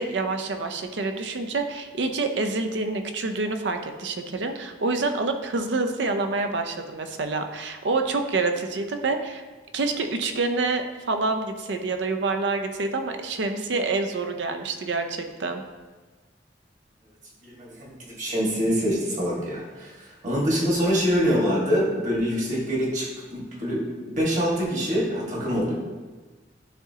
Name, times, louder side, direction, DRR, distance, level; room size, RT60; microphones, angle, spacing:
voice 1, 0.0-9.4 9.7-15.6, right 3 dB, 75° right, 6 dB, 0.6 m, -27 dB
voice 2, 17.4-25.7, equal, 40° right, -5 dB, 1.6 m, -25 dB
10.0 x 3.7 x 2.8 m, 1.3 s
head